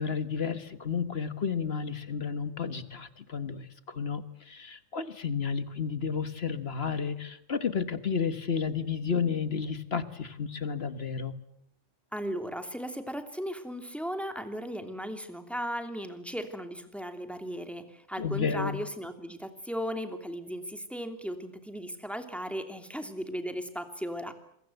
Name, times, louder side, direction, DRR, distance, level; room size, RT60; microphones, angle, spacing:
voice 1, 0.0-11.3 18.2-18.8, left 6 dB, 55° left, 12 dB, 1.7 m, -32 dB
voice 2, 12.1-24.3, equal, ahead, 7 dB, 2.8 m, -36 dB
27.0 x 22.5 x 8.0 m, 0.71 s
omnidirectional pair, 1.3 m